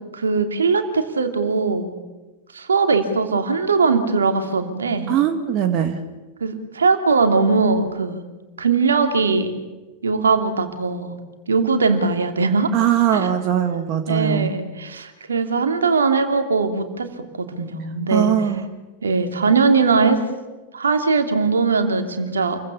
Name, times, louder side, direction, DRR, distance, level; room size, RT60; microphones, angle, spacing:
voice 1, 0.1-1.9 2.5-5.1 6.4-8.2 8.6-9.5 10.0-11.1 11.5-12.7 13.1-13.3 14.1-17.1 17.4-18.3 19.0-20.2 20.7-22.6, right 4 dB, 70° right, 6 dB, 2.8 m, -20 dB
voice 2, 5.1-6.0 12.7-14.5 18.1-18.6, right 9 dB, 35° right, 7 dB, 1.9 m, -20 dB
29.0 x 23.0 x 7.2 m, 1.2 s
figure-of-eight pair, 90°, 0 cm